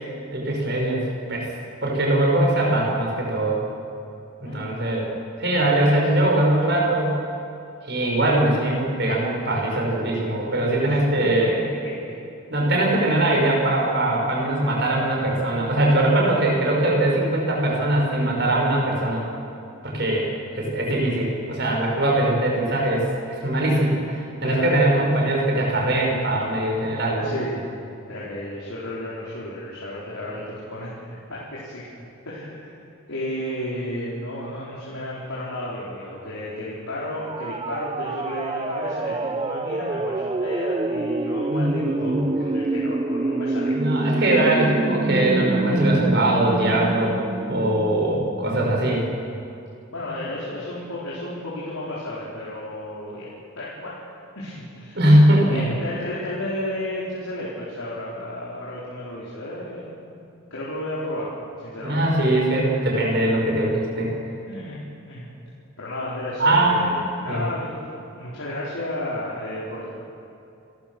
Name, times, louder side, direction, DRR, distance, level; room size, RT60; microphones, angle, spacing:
voice 1, 0.3-1.0 1.3-1.5 1.8-3.6 4.4-5.1 5.4-7.2 7.8-11.6 12.5-19.2 19.8-20.3 20.5-23.0 23.3-27.3 41.5-42.2 43.7-47.2 47.5-49.0 54.9-55.7 61.8-64.1 66.4-67.0 67.3-67.5, right 1 dB, 50° right, -2 dB, 5.7 m, -21 dB
voice 2, 4.4-5.1 10.8-11.5 11.8-12.1 12.9-13.1 24.4-25.0 27.2-27.6 28.1-30.9 31.3-31.9 32.3-32.7 33.1-44.1 48.8-49.0 49.9-53.3 53.6-54.0 54.3-55.0 55.5-60.1 60.5-61.3 61.6-62.0 64.5-65.3 65.8-70.0, left 1 dB, 80° left, -7 dB, 4.4 m, -33 dB
sound 1, 37.2-49.0, right 2 dB, 25° right, 0.4 m, -27 dB
29.5 x 14.5 x 6.3 m, 2.7 s
head